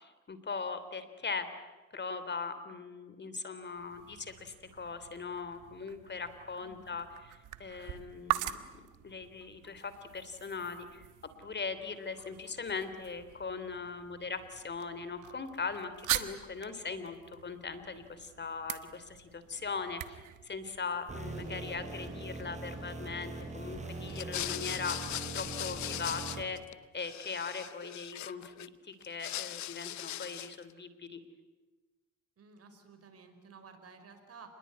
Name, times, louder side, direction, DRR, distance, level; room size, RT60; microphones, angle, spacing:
voice 1, 0.0-1.6 1.9-11.1 11.4-25.0 25.3-26.6 26.9-31.2, left 5 dB, 35° left, 11 dB, 3.3 m, -40 dB
sound 1, 3.6-21.4, right 14 dB, 90° right, 1.4 m, -43 dB
voice 2, 6.6-7.0 32.4-34.5, right 5 dB, 50° right, 7 dB, 5.3 m, -54 dB
sound 2, 21.1-26.4, right 2 dB, 25° right, 6.3 m, -42 dB
sound 3, 24.1-26.7 27.0-28.7 29.0-30.6, left 13 dB, 70° left, 0.8 m, -40 dB
28.0 x 21.5 x 9.6 m, 1.2 s
cardioid pair, 90°, 30 cm